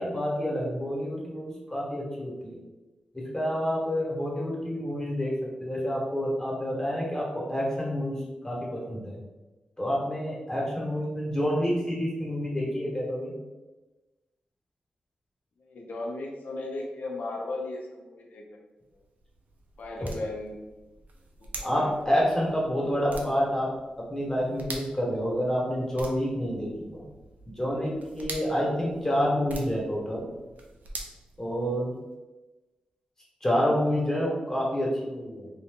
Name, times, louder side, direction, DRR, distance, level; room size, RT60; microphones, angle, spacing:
voice 1, 0.0-2.6 3.1-5.3 5.6-9.2 9.8-13.4 21.6-23.7 24.1-27.0 27.6-30.3 31.4-32.0 33.4-35.5, equal, 20° left, -4 dB, 1.3 m, -28 dB
voice 2, 15.6-18.4 19.8-20.6 21.5-22.0, left 2 dB, 65° left, 0 dB, 0.7 m, -36 dB
sound 1, 18.8-32.0, right 2 dB, 65° right, 0.6 m, -45 dB
2.6 x 2.6 x 3.6 m, 1.1 s
cardioid pair, 65°, 3 cm